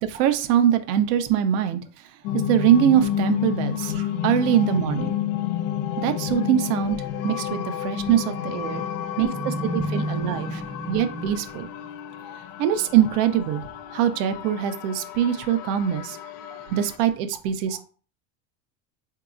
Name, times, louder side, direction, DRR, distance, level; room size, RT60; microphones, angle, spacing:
voice 1, 0.0-1.8 2.3-5.1 6.0-7.0 7.2-8.8 9.2-10.5 10.9-11.7 12.6-16.2 16.7-17.8, right 10 dB, 75° right, 9 dB, 0.7 m, -23 dB
sound 1, 2.2-17.0, left 10 dB, 80° left, 0.5 m, -31 dB
voice 2, 8.5-11.3 17.7-17.8, right 1 dB, 20° right, 3 dB, 0.6 m, -32 dB
3.9 x 2.8 x 2.4 m, 0.40 s
supercardioid pair, 120°, 49 cm